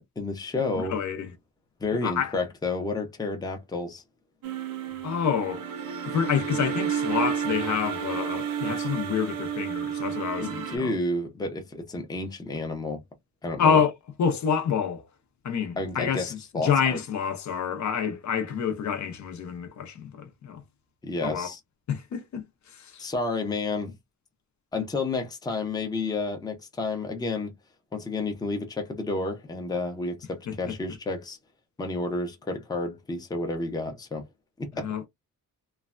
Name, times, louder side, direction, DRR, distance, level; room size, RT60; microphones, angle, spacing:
voice 1, 0.2-0.9 1.8-4.0 10.4-13.0 13.4-13.8 15.8-17.0 21.0-21.6 23.0-23.9 24.7-27.5 27.9-31.4 31.8-34.3 34.6-35.1, left 3 dB, 10° left, 0.6 m, -30 dB
voice 2, 0.7-1.3 2.0-2.3 5.0-5.7 6.0-11.0 13.6-13.9 14.2-15.1 15.4-20.6 21.2-21.5 21.9-23.0 30.5-30.7 34.8-35.0, left 7 dB, 55° left, 0.6 m, -28 dB
sound 1, 4.4-10.8, right 8 dB, 75° right, 0.6 m, -31 dB
3.1 x 2.1 x 2.4 m
wide cardioid pair, 155°, 34 cm